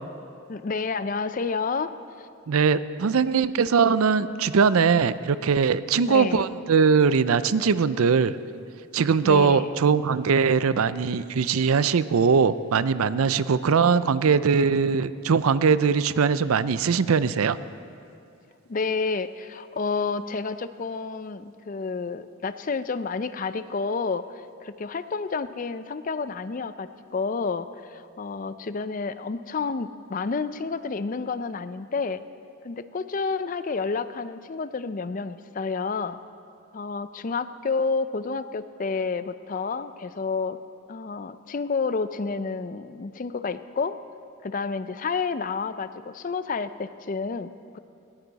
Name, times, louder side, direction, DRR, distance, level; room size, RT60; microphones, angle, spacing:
voice 1, 0.5-2.3 6.0-6.4 9.2-9.7 18.7-32.2 32.6-36.2 36.7-40.6 40.9-44.0 44.4-47.8, left 4 dB, 40° left, 13 dB, 0.4 m, -30 dB
voice 2, 2.5-8.4 8.9-17.6, right 5 dB, 80° right, 15 dB, 0.5 m, -21 dB
19.5 x 14.5 x 4.1 m, 2.5 s
head